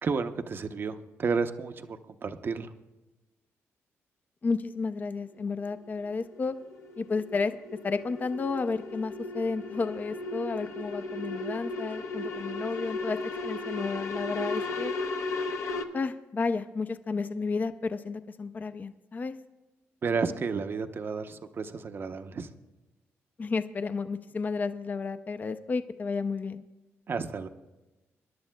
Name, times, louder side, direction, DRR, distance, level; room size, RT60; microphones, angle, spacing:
voice 1, 0.0-2.7 20.0-22.5 27.1-27.5, right 5 dB, 45° right, 8 dB, 0.6 m, -32 dB
voice 2, 4.4-6.5 7.0-7.6 7.8-13.2 13.4-14.9 15.9-19.4 23.4-26.6, left 4 dB, 35° left, 11 dB, 0.4 m, -32 dB
sound 1, 5.3-15.8, left 3 dB, 70° left, 0.9 m, -36 dB
25.5 x 11.0 x 2.2 m, 1.1 s
cardioid pair, 85°, 5 cm